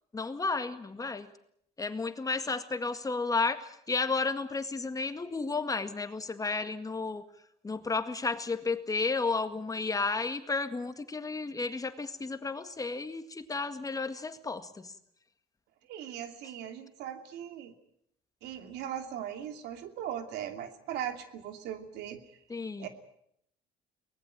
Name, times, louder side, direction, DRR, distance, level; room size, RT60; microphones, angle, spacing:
voice 1, 0.1-1.3 1.8-7.2 7.6-14.9 22.5-22.9, left 4 dB, 20° left, 9 dB, 1.9 m, -32 dB
voice 2, 15.8-17.7 18.4-22.2 22.8-22.9, right 10 dB, 85° right, 7 dB, 2.7 m, -39 dB
23.5 x 19.5 x 9.0 m, 0.72 s
cardioid pair, 110°, 17 cm